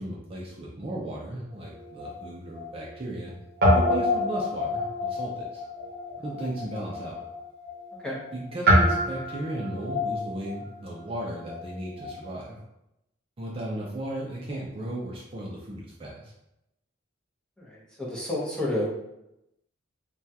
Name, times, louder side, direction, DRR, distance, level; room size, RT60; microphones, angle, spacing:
voice 1, 0.0-3.3 3.7-5.6 6.2-7.1 8.3-12.6 13.4-16.3, right 1 dB, 30° right, -4 dB, 0.5 m, -35 dB
Guitar, 1.5-3.3 3.6-12.2, left 1 dB, 50° right, 0.8 m, -27 dB
voice 2, 17.6-18.9, left 1 dB, 5° left, -6 dB, 0.7 m, -30 dB
3.4 x 2.3 x 2.7 m, 0.87 s
head